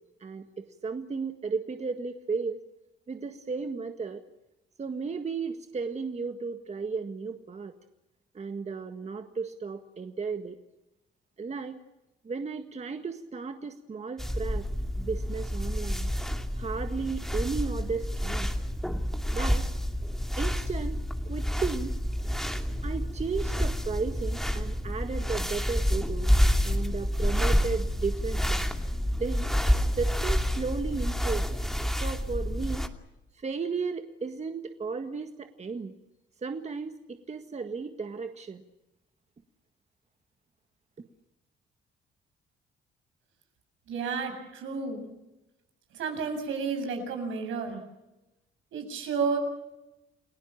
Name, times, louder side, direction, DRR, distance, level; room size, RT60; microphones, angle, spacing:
voice 1, 0.2-2.6 3.1-4.2 4.8-7.7 8.4-10.6 11.4-11.8 12.2-14.7 15.0-16.1 16.6-18.5 19.3-19.7 20.4-22.0 22.8-28.7 29.2-29.5 30.0-31.5 31.8-32.9 33.4-35.9 36.4-38.6, right 4 dB, 35° right, 6 dB, 1.8 m, -34 dB
sound 1, 14.2-32.9, equal, ahead, 2.5 m, -28 dB
voice 2, 43.9-45.1 45.9-47.8 48.7-49.4, right 5 dB, 80° right, 4 dB, 7.6 m, -31 dB
30.0 x 18.0 x 7.4 m, 0.94 s
cardioid pair, 90°, 20 cm